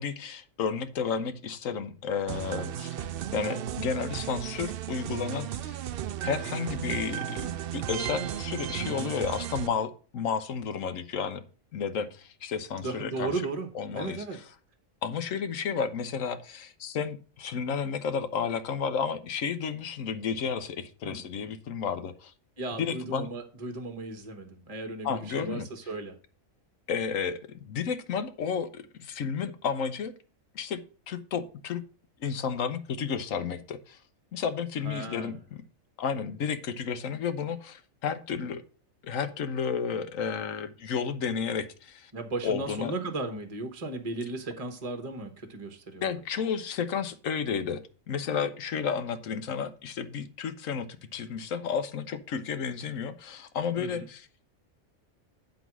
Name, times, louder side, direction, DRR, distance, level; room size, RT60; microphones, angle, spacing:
voice 1, 0.0-3.0 3.3-5.8 6.2-11.4 11.7-13.3 13.7-14.2 15.0-22.3 22.8-23.3 25.0-25.7 26.9-30.1 30.5-31.8 32.2-34.0 34.3-35.6 36.0-38.6 39.0-42.1 42.4-42.9 46.0-54.5, left 6 dB, 75° left, 10 dB, 1.2 m, -32 dB
sound 1, 2.3-9.7, right 11 dB, 65° right, 0.6 m, -34 dB
voice 2, 8.8-9.1 12.8-13.7 13.9-14.4 21.0-21.2 22.6-26.2 34.8-35.3 42.1-46.1 53.8-54.1, right 2 dB, 30° right, 5 dB, 1.2 m, -36 dB
9.5 x 3.9 x 6.0 m, 0.38 s
omnidirectional pair, 1.4 m